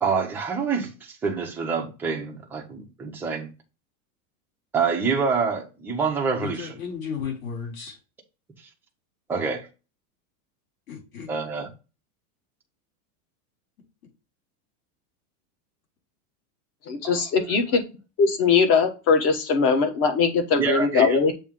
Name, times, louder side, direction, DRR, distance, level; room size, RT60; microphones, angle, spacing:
voice 1, 0.0-3.5 4.7-6.7 9.3-9.7 11.3-11.7 20.6-21.2, right 5 dB, 5° right, 0.5 m, -26 dB
voice 2, 6.4-8.0 10.9-11.3, left 6 dB, 60° left, 4.0 m, -34 dB
voice 3, 16.9-17.8 18.2-21.3, left 5 dB, 35° left, 1.1 m, -21 dB
7.1 x 2.8 x 5.0 m
supercardioid pair, 165°, 45 cm